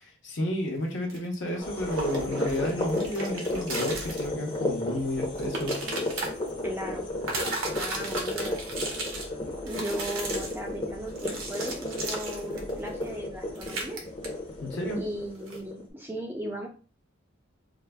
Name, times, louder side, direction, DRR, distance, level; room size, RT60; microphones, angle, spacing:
voice 1, 0.0-5.8 14.6-15.0, left 1 dB, 60° left, 0 dB, 0.8 m, -31 dB
sound 1, 1.1-4.3 4.5-4.6 5.2-6.3 7.2-9.2 9.7-10.6 11.1-13.2 13.6-14.0 14.2-14.3 15.5-15.6, right 2 dB, 75° right, 0.8 m, -35 dB
sound 2, 1.6-15.8, left 1 dB, 25° left, 0.7 m, -34 dB
voice 2, 6.6-7.1 7.8-8.6 9.6-14.0 15.0-16.7, right 1 dB, 10° right, 1 dB, 0.4 m, -36 dB
4.7 x 2.1 x 2.2 m, 0.37 s
head